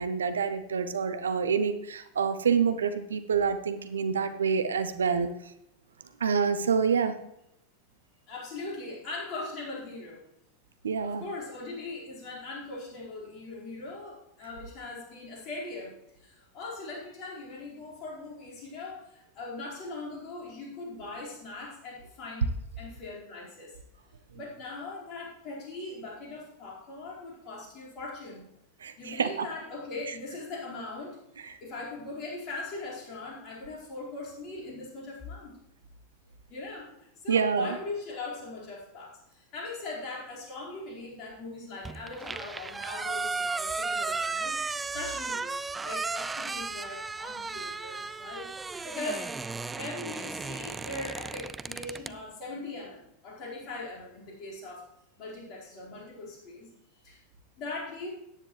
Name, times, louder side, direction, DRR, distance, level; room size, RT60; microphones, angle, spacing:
voice 1, 0.0-5.3 6.2-7.1 10.8-11.2 28.8-29.5 31.5-31.6 37.3-37.8, right 6 dB, 75° right, 11 dB, 0.7 m, -27 dB
voice 2, 8.3-10.2 11.0-22.5 22.8-23.8 24.3-28.5 29.0-35.6 36.5-49.3 49.7-54.9 55.2-56.7 57.0-57.2 57.6-58.1, left 3 dB, 40° left, -4 dB, 4.7 m, -40 dB
sound 1, 41.8-52.1, right 4 dB, 15° right, 0.4 m, -35 dB
14.0 x 10.0 x 3.2 m, 0.81 s
figure-of-eight pair, 85°, 0 cm